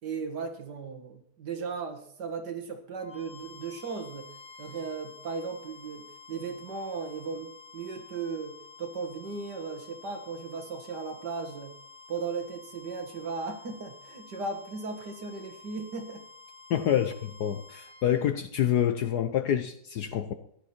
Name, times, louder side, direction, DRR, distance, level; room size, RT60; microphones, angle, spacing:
voice 1, 0.0-4.3 4.6-11.8 12.1-16.2 16.7-16.9, right 4 dB, 55° right, 5 dB, 2.2 m, -36 dB
sound 1, 2.9-18.2, left 5 dB, 5° left, 2.0 m, -51 dB
voice 2, 16.7-20.3, left 10 dB, 65° left, 8 dB, 1.1 m, -27 dB
15.0 x 11.0 x 4.4 m, 0.69 s
omnidirectional pair, 2.2 m